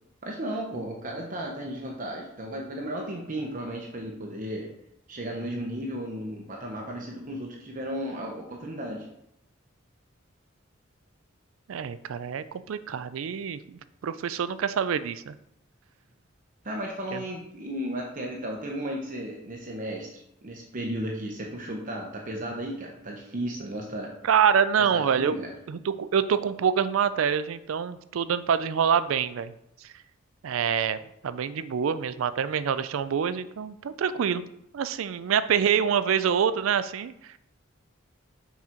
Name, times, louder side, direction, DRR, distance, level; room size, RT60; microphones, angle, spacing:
voice 1, 0.2-4.7 5.1-9.1 16.6-24.1 24.8-25.5, right 1 dB, 45° right, 0 dB, 0.8 m, -34 dB
voice 2, 11.7-13.6 14.0-15.3 17.1-17.2 24.2-25.3 25.7-29.5 30.4-31.0 31.2-34.4 34.7-37.1, right 7 dB, 90° right, 14 dB, 0.4 m, -26 dB
6.0 x 4.1 x 4.4 m, 0.79 s
head